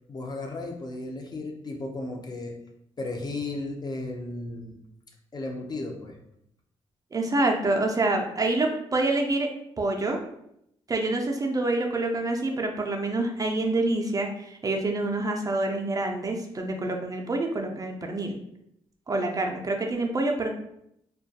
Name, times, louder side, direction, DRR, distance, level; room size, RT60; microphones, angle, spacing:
voice 1, 0.1-2.6 3.0-4.8 5.3-6.2, left 2 dB, 35° left, 2 dB, 0.5 m, -34 dB
voice 2, 7.1-9.5 9.8-10.2 10.9-18.4 19.1-20.5, right 2 dB, 30° right, 2 dB, 0.4 m, -27 dB
2.2 x 2.2 x 2.7 m, 0.76 s
cardioid pair, 75°, 12 cm